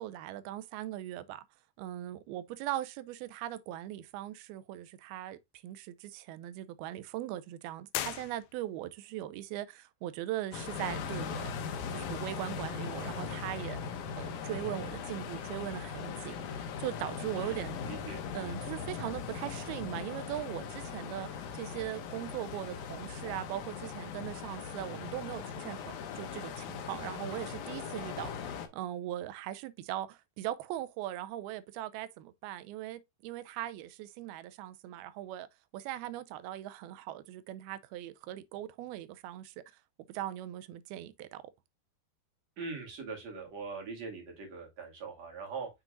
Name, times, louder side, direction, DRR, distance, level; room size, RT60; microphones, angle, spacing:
voice 1, 0.0-1.4 1.8-11.6 11.9-17.9 18.3-25.8 26.1-35.5 35.7-39.5 40.1-41.4, right 13 dB, 80° right, 2.4 m, -40 dB
sound 1, 7.9-9.0, left 15 dB, 85° left, 2.7 m, -38 dB
sound 2, 10.5-28.7, left 6 dB, 70° left, 2.0 m, -40 dB
voice 2, 17.9-18.2 42.6-45.7, right 4 dB, 45° right, 2.9 m, -41 dB
6.8 x 6.0 x 2.4 m
omnidirectional pair, 4.7 m